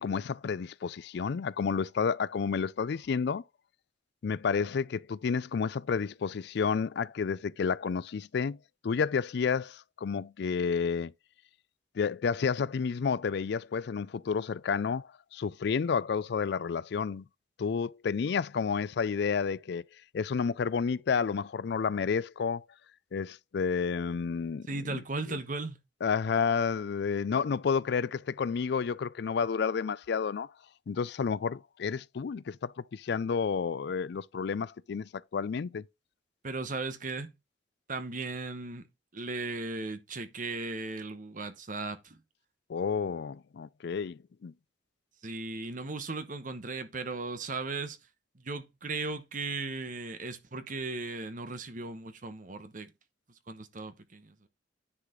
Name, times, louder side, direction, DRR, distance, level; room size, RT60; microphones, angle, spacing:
voice 1, 0.0-3.4 4.2-8.6 8.8-11.1 12.0-17.2 17.6-19.8 20.1-22.6 23.1-25.0 25.3-25.4 26.0-30.5 30.9-35.8 42.7-44.5, left 6 dB, 60° left, 0.4 m, -30 dB
voice 2, 24.7-25.8 36.4-37.3 37.9-38.8 39.1-42.2 45.2-48.0 48.3-52.9 53.5-54.5, right 3 dB, 45° right, 1.1 m, -37 dB
9.9 x 4.9 x 3.8 m
head